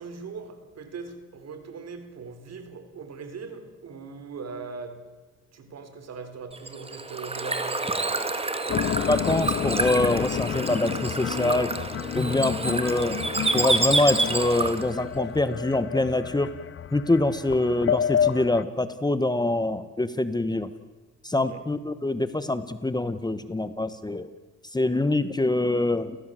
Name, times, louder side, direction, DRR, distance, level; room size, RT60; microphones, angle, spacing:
voice 1, 0.0-5.1 5.5-7.9 21.3-21.6, right 5 dB, 55° right, 3.9 m, -40 dB
Bird / Water, 6.5-15.0, right 3 dB, 20° right, 2.2 m, -28 dB
sound 1, 8.7-18.6, left 9 dB, 45° left, 0.7 m, -30 dB
voice 2, 9.1-11.7 12.1-13.2 13.5-16.5 16.9-20.7 21.2-24.3 24.7-26.2, left 2 dB, 15° left, 1.3 m, -25 dB
30.0 x 17.0 x 7.8 m
cardioid pair, 90°, 30 cm